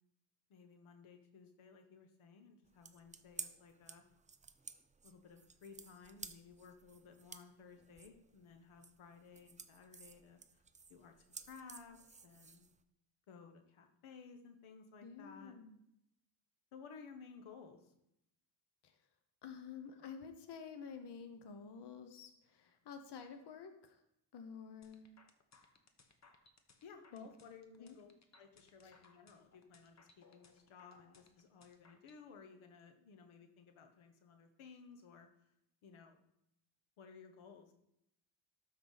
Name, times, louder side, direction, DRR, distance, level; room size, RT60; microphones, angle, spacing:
voice 1, 0.5-4.0 5.0-10.6 10.9-12.7 13.3-15.5 16.7-17.9 26.8-28.1 28.4-35.3 35.8-36.2 37.0-37.7, left 5 dB, 90° left, 6 dB, 1.1 m, -57 dB
sound 1, 2.6-12.8, right 5 dB, 15° right, 0.3 m, -54 dB
voice 2, 15.0-15.8 18.8-19.0 19.4-24.0 24.3-25.1 27.1-27.3 27.8-28.0 28.8-29.0, left 6 dB, 60° left, 7 dB, 1.0 m, -50 dB
sound 2, 24.8-32.2, left 4 dB, 35° left, 0.9 m, -66 dB
12.5 x 4.6 x 4.0 m, 0.79 s
cardioid pair, 100°, 47 cm